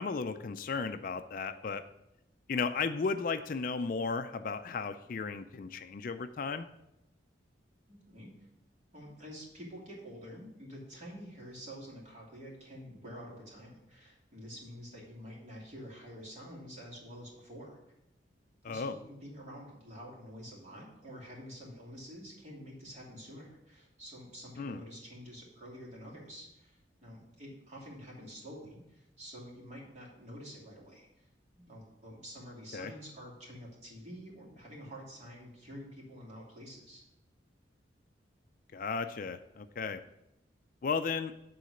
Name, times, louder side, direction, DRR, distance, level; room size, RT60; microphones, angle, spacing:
voice 1, 0.0-1.8 2.5-6.7 18.6-19.0 24.6-24.8 32.7-32.9 38.7-40.0 40.8-41.3, left 4 dB, 45° left, 10 dB, 0.4 m, -35 dB
voice 2, 7.9-8.3 8.9-17.8 18.6-31.3 31.5-37.0, equal, 40° right, -4 dB, 2.8 m, -48 dB
9.5 x 3.9 x 6.4 m, 0.87 s
head